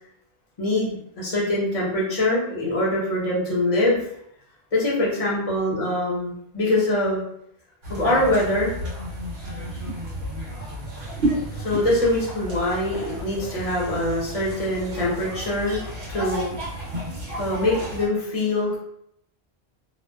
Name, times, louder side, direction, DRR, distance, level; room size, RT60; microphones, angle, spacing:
voice 1, 0.6-4.1 4.7-7.2 7.9-8.8 11.4-17.0 17.4-18.8, left 1 dB, 35° left, -6 dB, 0.8 m, -24 dB
sound 1, 7.8-18.1, right 1 dB, 70° right, 1.1 m, -32 dB
2.5 x 2.1 x 2.2 m, 0.74 s
omnidirectional pair, 1.1 m